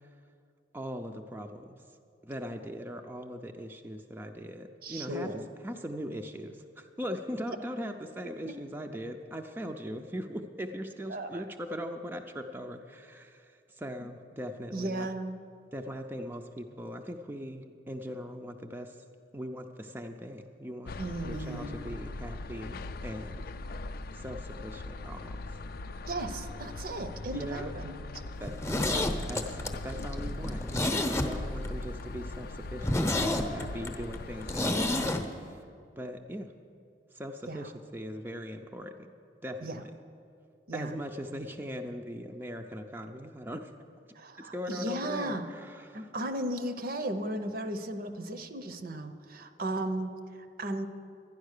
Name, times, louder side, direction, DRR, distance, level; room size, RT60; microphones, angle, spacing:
voice 1, 0.7-1.8 2.2-5.3 5.6-15.1 15.7-19.0 19.3-23.5 24.1-25.5 27.3-27.7 28.4-29.6 29.8-35.6 36.0-36.5 37.1-39.1 39.4-40.0 40.7-43.7 44.4-46.1, equal, 10° right, 4 dB, 0.5 m, -40 dB
voice 2, 4.8-5.4 7.5-7.6 8.4-8.5 11.1-11.4 14.7-15.4 21.0-21.8 26.1-28.0 37.5-37.7 39.6-39.8 40.7-41.0 44.1-45.5 45.9-50.9, right 1 dB, 55° right, 8 dB, 0.8 m, -35 dB
sound 1, 20.9-35.2, left 2 dB, 60° left, 0.4 m, -40 dB
Zipper (clothing), 28.4-31.7 32.0-32.1 32.4-32.5 32.8-35.2 35.5-35.6, left 1 dB, 15° left, 0.8 m, -30 dB
12.0 x 10.0 x 6.6 m, 2.4 s
head